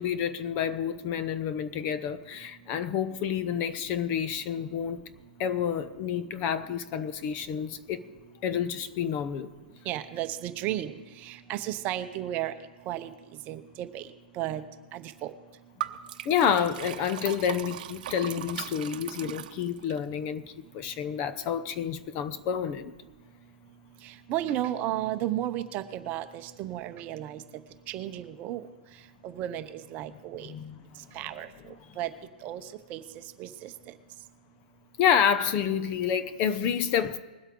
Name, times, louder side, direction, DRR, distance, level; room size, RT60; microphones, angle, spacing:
voice 1, 0.0-5.0 5.4-8.0 8.4-9.5 16.2-22.9 30.5-30.8 35.0-37.2, left 8 dB, 35° left, 0.7 m, -29 dB
voice 2, 9.9-10.9 11.2-12.5 12.9-13.1 13.5-14.1 14.4-14.6 14.9-15.3 24.0-27.4 27.9-28.6 29.2-30.5 31.1-31.5 32.0-32.1 32.4-32.6 32.9-33.0 33.4-33.7, right 13 dB, 35° right, 0.8 m, -33 dB
Liquid, 15.8-20.0, right 12 dB, 60° right, 0.8 m, -38 dB
21.0 x 8.2 x 3.8 m
hypercardioid pair, 140°, 5 cm